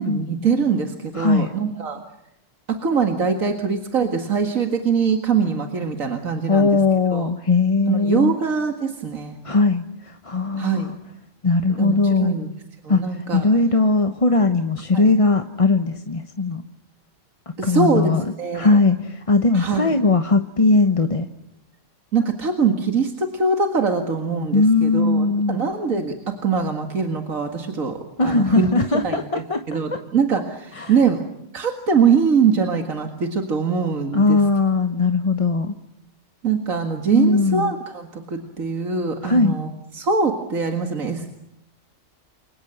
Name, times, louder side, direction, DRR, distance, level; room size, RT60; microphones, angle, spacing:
voice 1, 0.0-2.0 2.7-6.8 7.1-7.3 7.9-9.4 10.6-10.9 11.8-12.5 12.8-13.5 14.9-15.1 17.6-18.8 19.5-20.0 22.1-28.7 29.0-31.2 31.5-34.4 36.4-41.3, right 5 dB, 90° right, 4 dB, 2.4 m, -23 dB
voice 2, 1.1-1.5 6.5-8.3 9.4-11.0 11.4-12.4 12.9-16.6 17.6-21.3 24.5-25.6 28.2-29.6 29.9-30.0 30.7-31.0 34.1-35.7 37.1-37.7 39.2-39.5, left 3 dB, 25° left, 7 dB, 1.0 m, -19 dB
29.0 x 24.5 x 8.0 m, 0.83 s
omnidirectional pair, 1.4 m